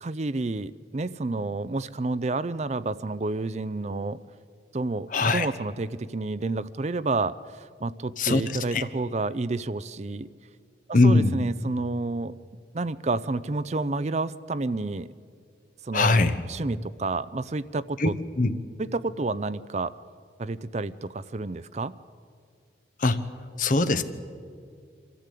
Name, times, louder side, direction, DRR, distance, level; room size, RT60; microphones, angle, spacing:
voice 1, 0.0-4.2 4.7-10.3 10.9-12.3 12.7-15.1 15.8-16.2 16.5-18.1 18.8-20.0 20.4-21.9, right 3 dB, 40° right, 14 dB, 0.5 m, -30 dB
voice 2, 5.1-5.5 8.2-8.4 8.7-8.8 10.9-11.4 15.9-16.4 18.0-18.1 18.4-18.5 23.0-23.2 23.6-24.0, left 2 dB, 45° left, 10 dB, 1.0 m, -21 dB
24.5 x 14.0 x 8.4 m, 2.2 s
head